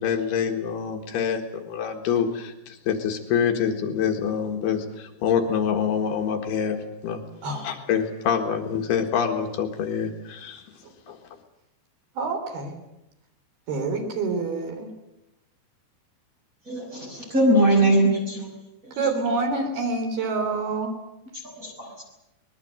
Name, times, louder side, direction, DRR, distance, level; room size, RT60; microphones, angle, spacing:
voice 1, 0.0-10.7 11.1-11.2, left 7 dB, 75° left, 4 dB, 3.6 m, -26 dB
voice 2, 12.2-12.7 13.7-14.9 19.0-20.9, right 3 dB, 65° right, 4 dB, 5.6 m, -27 dB
voice 3, 16.7-18.5 21.6-22.0, right 1 dB, 20° right, -2 dB, 6.0 m, -21 dB
24.5 x 20.5 x 7.8 m, 0.88 s
omnidirectional pair, 4.8 m